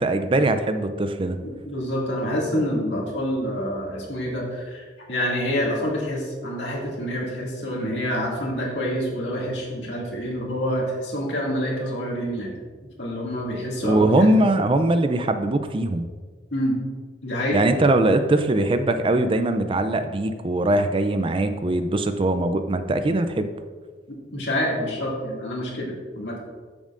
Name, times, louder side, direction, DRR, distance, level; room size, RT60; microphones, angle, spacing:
voice 1, 0.0-1.4 13.8-16.1 17.5-23.5, right 2 dB, 30° right, 9 dB, 0.4 m, -21 dB
voice 2, 1.7-12.5 13.0-14.5 16.5-16.8 17.2-17.6 24.1-26.4, equal, 65° left, -3 dB, 2.3 m, -27 dB
13.0 x 7.2 x 2.5 m, 1.5 s
head